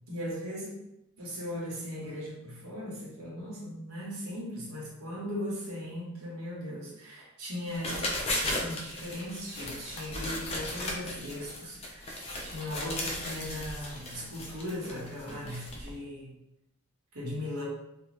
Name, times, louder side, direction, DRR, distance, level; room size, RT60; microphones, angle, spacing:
voice 1, 0.1-0.9 1.2-8.1 8.4-16.3 17.1-17.7, left 1 dB, 80° right, -5 dB, 1.0 m, -38 dB
sound 1, 7.7-15.9, left 1 dB, 25° left, 0.4 m, -36 dB
2.6 x 2.2 x 3.2 m, 0.86 s
head